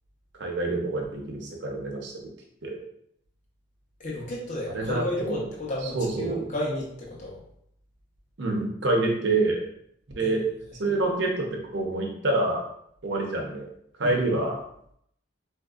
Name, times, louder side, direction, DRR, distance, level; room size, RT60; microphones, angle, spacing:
voice 1, 0.4-2.3 2.6-2.8 4.7-5.5 5.8-6.4 8.4-9.7 10.1-10.4 10.7-12.6 13.0-13.7 14.0-14.6, right 2 dB, 60° right, 0 dB, 0.7 m, -27 dB
voice 2, 4.0-7.4 10.2-10.3 14.0-14.2, left 1 dB, 40° left, -3 dB, 0.9 m, -32 dB
4.1 x 2.6 x 2.3 m, 0.71 s
head